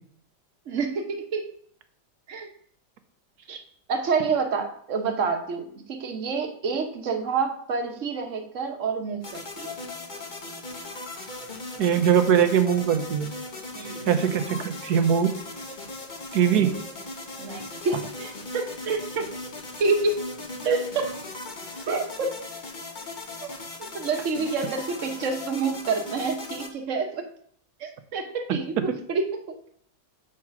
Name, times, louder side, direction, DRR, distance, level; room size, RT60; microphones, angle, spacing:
voice 1, 0.7-1.5 2.3-2.5 3.5-3.6 3.9-9.8 13.7-14.1 17.4-19.3 19.8-20.3 20.6-21.1 21.9-22.4 23.4-23.5 23.8-27.2 27.8-29.7, right 4 dB, 50° right, 5 dB, 1.3 m, -28 dB
sound 1, 9.2-26.7, left 2 dB, 35° left, 1.0 m, -38 dB
voice 2, 11.8-13.3 14.1-15.3 16.3-16.8, right 8 dB, 70° right, 9 dB, 1.3 m, -21 dB
7.6 x 4.9 x 5.8 m, 0.63 s
omnidirectional pair, 1.8 m